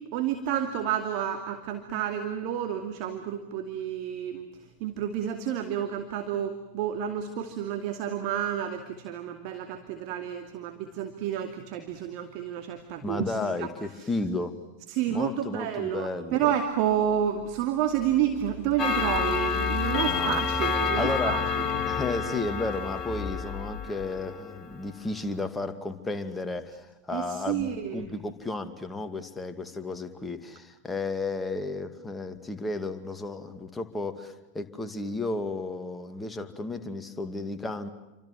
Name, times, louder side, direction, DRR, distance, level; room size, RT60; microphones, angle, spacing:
voice 1, 0.1-4.5 4.8-13.7 14.9-21.9 27.1-28.1, right 10 dB, 45° right, 6 dB, 2.5 m, -30 dB
voice 2, 13.0-14.6 15.1-16.5 20.0-20.4 21.0-21.4 21.9-37.9, left 3 dB, 10° left, 8 dB, 2.3 m, -33 dB
Engine, 17.3-17.4 18.0-23.9, left 5 dB, 45° left, 1.6 m, -37 dB
Clock, 18.8-24.8, left 6 dB, 30° left, 2.4 m, -29 dB
29.5 x 25.5 x 7.5 m, 1.0 s
figure-of-eight pair, 90°, 0 cm